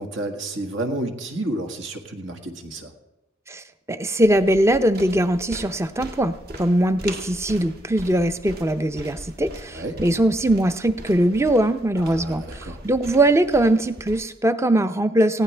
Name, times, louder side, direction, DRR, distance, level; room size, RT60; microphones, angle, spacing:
voice 1, 0.0-2.9 9.7-10.0 12.0-12.8, right 1 dB, 70° right, 5 dB, 1.8 m, -30 dB
voice 2, 3.5-15.4, right 1 dB, 15° right, 11 dB, 0.5 m, -21 dB
sound 1, 4.2-14.2, right 1 dB, 50° right, 1.9 m, -40 dB
19.5 x 16.0 x 3.4 m, 0.98 s
head